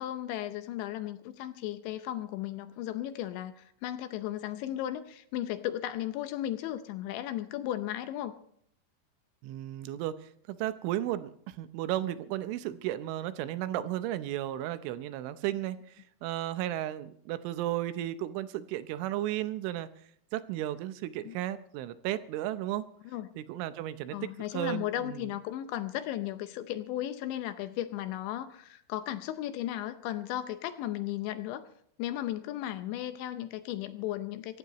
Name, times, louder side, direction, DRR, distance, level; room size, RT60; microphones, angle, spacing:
voice 1, 0.0-8.4 21.2-21.4 23.1-23.3 24.1-31.6 32.0-34.6, left 12 dB, 80° left, 10 dB, 2.8 m, -35 dB
voice 2, 9.4-19.9 20.3-22.8 23.4-24.2 24.5-25.3, right 13 dB, 80° right, 12 dB, 3.2 m, -34 dB
24.5 x 16.0 x 3.0 m, 0.66 s
omnidirectional pair, 5.7 m